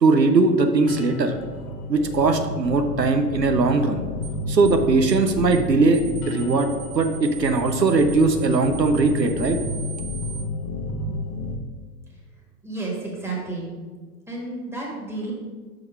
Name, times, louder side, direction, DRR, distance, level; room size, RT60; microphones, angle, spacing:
voice 1, 0.0-1.4 1.9-4.0 4.5-6.7 6.9-9.6, right 3 dB, 85° right, 6 dB, 0.7 m, -20 dB
sound 1, 0.9-11.5, left 2 dB, 30° left, 0.9 m, -31 dB
sound 2, 4.2-4.4 4.7-4.8 5.1-5.3 5.5-5.7 5.9-10.4, right 8 dB, 70° right, 1.0 m, -40 dB
voice 2, 12.6-13.7 14.3-15.3, right 2 dB, 5° right, -3 dB, 1.6 m, -31 dB
6.0 x 4.8 x 5.2 m, 1.5 s
figure-of-eight pair, 95°, 49 cm